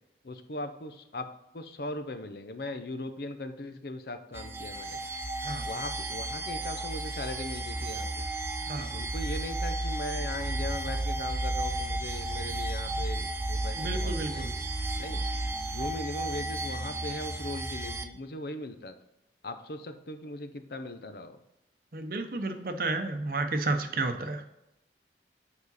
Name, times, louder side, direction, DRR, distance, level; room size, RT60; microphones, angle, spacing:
voice 1, 0.2-1.3 1.5-5.0 5.7-8.2 8.9-14.5 15.0-15.2 15.7-18.9 19.4-21.4, left 2 dB, 60° left, 8 dB, 0.6 m, -39 dB
sound 1, 4.3-18.0, right 2 dB, 15° right, 0.4 m, -33 dB
voice 2, 13.7-14.5 21.9-24.4, right 2 dB, 50° right, 7 dB, 0.7 m, -32 dB
7.1 x 5.0 x 4.1 m, 0.86 s
head